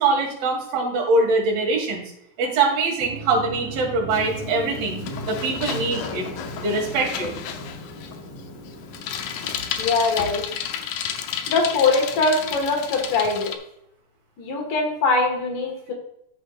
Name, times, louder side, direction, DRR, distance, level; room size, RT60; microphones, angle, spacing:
voice 1, 0.0-2.1 2.4-6.3 6.6-7.3, right 3 dB, 75° right, -1 dB, 3.8 m, -23 dB
sound 1, 3.0-10.5, equal, 10° left, 1.6 m, -37 dB
Bicycle, 4.1-13.6, left 8 dB, 80° left, 1.7 m, -32 dB
voice 2, 9.8-10.4 11.5-13.5 14.4-15.9, left 3 dB, 65° left, 1 dB, 3.1 m, -22 dB
13.0 x 5.9 x 2.5 m, 0.77 s
omnidirectional pair, 4.3 m